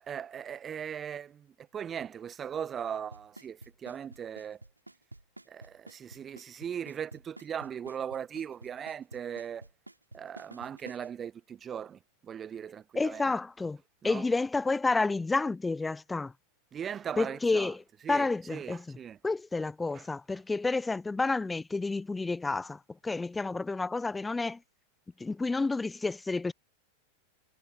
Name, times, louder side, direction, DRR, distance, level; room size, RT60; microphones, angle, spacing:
voice 1, 0.0-1.5 1.7-4.6 5.5-9.7 10.1-13.2 14.0-14.2 16.7-17.7 18.0-19.2 19.9-20.0, right 8 dB, 25° right, 1.4 m, -39 dB
Drum kit / Snare drum / Bass drum, 3.1-11.1, right 2 dB, 85° right, 6.3 m, -49 dB
voice 2, 12.9-13.8 14.0-16.3 17.2-19.0 19.2-24.6 25.2-26.5, left 3 dB, 10° left, 1.0 m, -30 dB
figure-of-eight pair, 90°, 0 cm